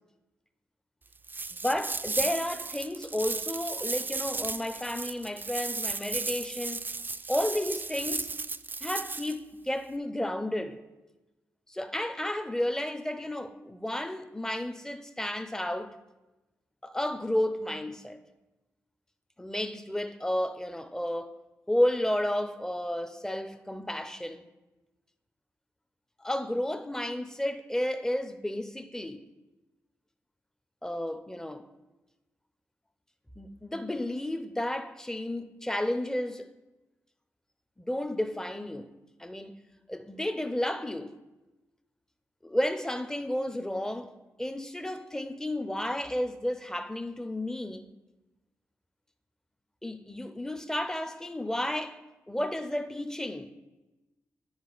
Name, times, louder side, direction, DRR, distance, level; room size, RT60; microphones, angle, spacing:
sound 1, 1.2-9.3, right 3 dB, 30° right, 0.4 m, -35 dB
voice 1, 1.5-6.8 7.3-8.3 8.8-10.8 11.7-16.0 16.8-18.2 19.4-21.3 21.7-24.4 26.2-29.3 30.8-31.7 33.4-36.5 37.8-38.9 39.2-39.6 39.9-41.1 42.4-44.1 44.4-47.9 49.8-52.0 52.3-53.5, left 1 dB, 10° left, 0.6 m, -32 dB
10.0 x 4.8 x 4.0 m
supercardioid pair, 45°, 6 cm